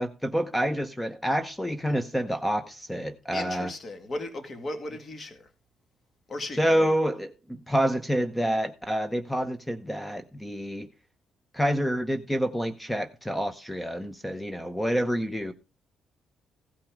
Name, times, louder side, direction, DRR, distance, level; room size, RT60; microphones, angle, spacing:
voice 1, 0.0-3.7 6.6-10.9 11.5-15.5, equal, 5° left, 0.8 m, -28 dB
voice 2, 3.3-5.5 6.3-7.0, left 2 dB, 40° left, 2.1 m, -36 dB
15.5 x 5.8 x 5.0 m
cardioid pair, 90°, 0 cm